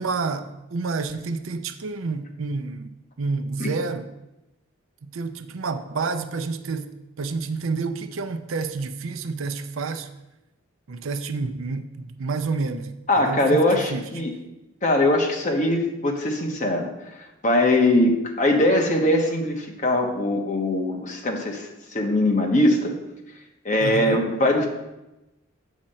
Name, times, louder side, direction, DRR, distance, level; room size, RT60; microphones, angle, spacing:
voice 1, 0.0-4.1 5.0-6.9 7.2-10.1 10.9-14.1 23.8-24.2, right 4 dB, 75° right, 9 dB, 0.5 m, -29 dB
voice 2, 13.1-14.3 14.8-16.9 17.4-21.7 21.9-22.9 23.6-24.7, left 1 dB, 35° left, 1 dB, 1.1 m, -21 dB
7.3 x 4.3 x 6.4 m, 0.95 s
head